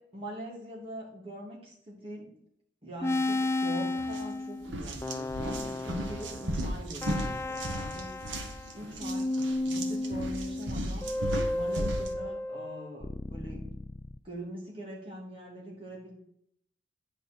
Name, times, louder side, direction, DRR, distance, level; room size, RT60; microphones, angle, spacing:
voice 1, 0.1-2.3 2.8-8.1 8.7-9.3 9.6-11.1 11.5-13.6 14.2-16.1, right 1 dB, 30° right, -4 dB, 2.7 m, -42 dB
sound 1, 3.0-8.8 9.0-14.2, left 2 dB, 15° left, 0.3 m, -33 dB
sound 2, 4.0-4.2 4.6-12.1, right 1 dB, 80° right, 1.1 m, -35 dB
9.7 x 5.4 x 4.5 m, 0.71 s
head